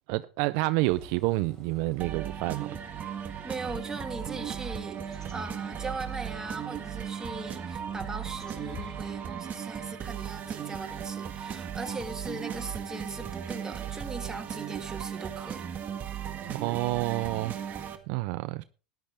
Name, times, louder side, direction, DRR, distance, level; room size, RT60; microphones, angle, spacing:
voice 1, 0.1-2.7 16.3-18.6, right 20 dB, 60° right, 0.5 m, -29 dB
sound 1, 0.8-9.2, left 3 dB, 10° left, 3.9 m, -50 dB
sound 2, 2.0-18.0, right 9 dB, 30° right, 1.7 m, -37 dB
voice 2, 3.4-15.7, right 3 dB, 10° right, 1.8 m, -39 dB
14.0 x 10.5 x 3.5 m
hypercardioid pair, 105°, 5 cm